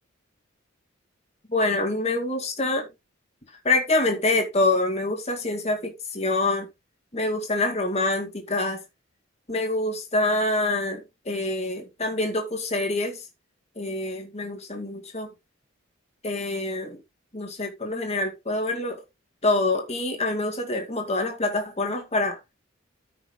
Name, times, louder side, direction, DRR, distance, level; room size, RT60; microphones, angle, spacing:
voice 1, 1.5-2.9 3.6-6.7 7.1-8.8 9.5-13.2 13.8-15.3 16.2-17.0 17.3-19.0 19.4-22.4, left 2 dB, 30° left, 2.1 m, -26 dB
14.0 x 5.9 x 2.3 m
head